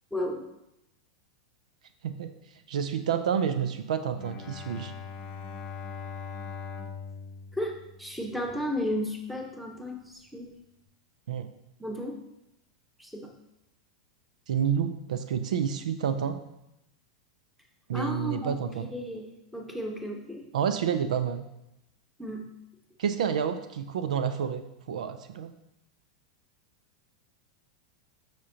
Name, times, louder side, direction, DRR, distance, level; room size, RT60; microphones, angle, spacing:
voice 1, 0.1-0.5 7.5-7.7 8.0-10.5 11.8-12.2 13.0-13.3 17.9-18.6 18.9-20.5 22.2-22.5, left 1 dB, ahead, 0 dB, 1.2 m, -33 dB
voice 2, 2.7-4.9 11.3-11.5 14.5-16.4 17.9-18.9 20.5-21.4 23.0-24.6 24.9-25.5, right 8 dB, 80° right, 10 dB, 0.5 m, -29 dB
Bowed string instrument, 4.2-8.5, left 5 dB, 35° left, 0.9 m, -41 dB
7.5 x 5.8 x 2.8 m, 0.87 s
hypercardioid pair, 105°, 4 cm